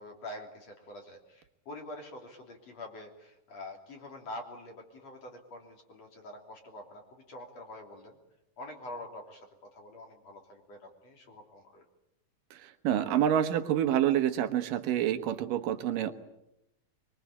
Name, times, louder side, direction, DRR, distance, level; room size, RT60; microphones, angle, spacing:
voice 1, 0.0-8.2 8.6-11.8, left 1 dB, 50° left, 2 dB, 4.3 m, -46 dB
voice 2, 12.5-16.1, right 10 dB, 80° right, 8 dB, 3.0 m, -28 dB
24.5 x 23.5 x 8.7 m, 0.88 s
omnidirectional pair, 3.9 m